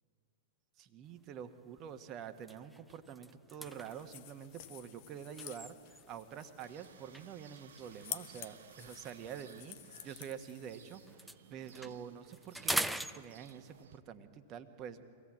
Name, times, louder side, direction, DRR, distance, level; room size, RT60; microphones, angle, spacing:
voice 1, 0.8-15.1, right 8 dB, 35° right, 8 dB, 1.3 m, -47 dB
sound 1, 1.2-1.4 1.9-2.0 2.3-6.3 7.1-10.7 11.0-13.8, right 1 dB, ahead, 0.6 m, -43 dB
sound 2, 3.7-11.2, left 12 dB, 50° left, 0.9 m, -51 dB
sound 3, 6.6-14.0, right 8 dB, 70° right, 0.7 m, -59 dB
24.0 x 17.0 x 7.6 m, 2.3 s
figure-of-eight pair, 100°, 0 cm